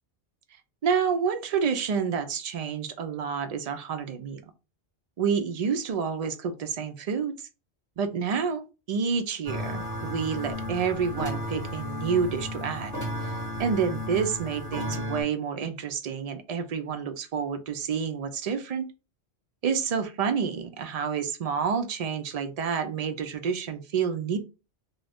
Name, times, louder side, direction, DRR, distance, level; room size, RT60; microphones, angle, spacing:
voice 1, 0.8-4.4 5.2-7.4 8.0-12.9 13.2-13.3 13.6-18.9 19.6-24.4, right 6 dB, 60° right, 0.4 m, -29 dB
sound 1, 9.5-15.2, left 1 dB, 15° left, 1.4 m, -33 dB
2.5 x 2.2 x 3.3 m
omnidirectional pair, 1.1 m